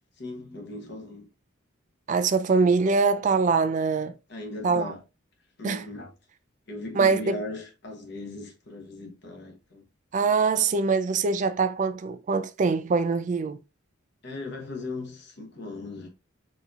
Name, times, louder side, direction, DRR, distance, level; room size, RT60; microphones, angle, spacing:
voice 1, 0.2-1.3 4.3-5.0 5.6-6.1 6.7-9.8 14.2-16.1, left 2 dB, 60° left, 1.0 m, -38 dB
voice 2, 2.1-4.1 4.6-4.9 5.6-5.8 6.9-7.3 10.1-13.6, right 4 dB, 40° right, 0.3 m, -23 dB
4.2 x 2.7 x 2.3 m
head